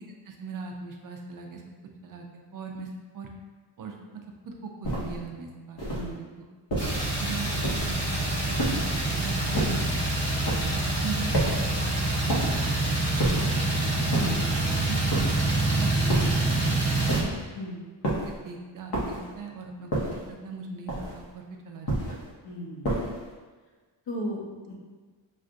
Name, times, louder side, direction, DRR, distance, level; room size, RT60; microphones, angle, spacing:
voice 1, 0.2-1.6 2.0-3.3 3.8-3.9 4.4-5.8 6.1-6.5 7.1-9.9 10.6-12.0 12.2-12.5 13.3-13.9 14.8-15.3 15.8-17.3 18.3-19.9 20.3-21.9, right 4 dB, 50° right, 2 dB, 0.4 m, -39 dB
sound 1, 4.8-5.2 5.8-6.1 6.7-7.1 7.6-8.0 8.6-9.0 9.5-9.9 10.4-10.8 11.3-11.7 12.3-12.7 13.2-13.6 14.1-14.5 15.1-15.5 16.1-16.5 17.1-17.5 18.0-18.4 18.9-19.3 19.9-20.3 20.9-21.3 21.9-22.3 22.8-23.3, right 1 dB, 55° left, 1.0 m, -30 dB
sound 2, 6.8-17.2, right 2 dB, 10° left, 1.3 m, -26 dB
voice 2, 22.4-22.9 24.1-24.7, equal, 75° left, -4 dB, 1.2 m, -35 dB
6.2 x 2.5 x 2.5 m, 1.4 s
wide cardioid pair, 175°, 45 cm